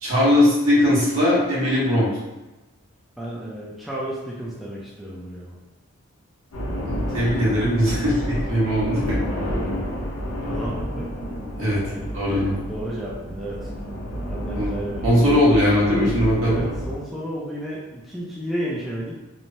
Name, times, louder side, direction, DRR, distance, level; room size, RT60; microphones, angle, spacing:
voice 1, 0.0-2.1 6.8-9.2 11.6-11.8 12.1-12.6 14.5-14.7 15.0-16.6, left 1 dB, 75° right, -7 dB, 1.1 m, -20 dB
voice 2, 3.2-5.6 10.5-11.1 11.8-15.1 15.3-15.4 16.4-19.2, right 1 dB, ahead, -7 dB, 0.4 m, -33 dB
sound 1, 6.5-16.9, equal, 90° left, 0.8 m, -30 dB
3.0 x 2.1 x 2.6 m, 1.1 s
head